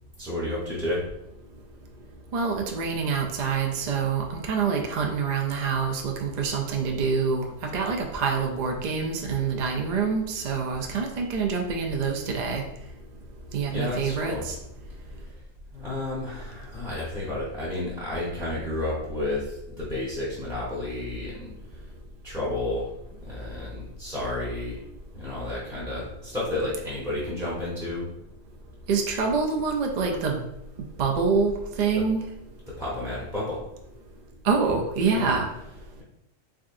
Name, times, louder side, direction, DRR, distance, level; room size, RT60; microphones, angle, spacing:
voice 1, 0.2-1.0 13.7-14.4 15.7-21.5 22.2-22.9 23.2-24.8 25.1-28.1 32.7-33.6 35.1-35.3, left 1 dB, 5° right, -7 dB, 0.7 m, -31 dB
voice 2, 2.3-12.6 13.5-14.6 28.9-30.4 31.0-32.2 34.4-35.5, right 5 dB, 55° right, 1 dB, 0.5 m, -26 dB
3.7 x 3.6 x 2.5 m, 0.83 s
omnidirectional pair, 1.3 m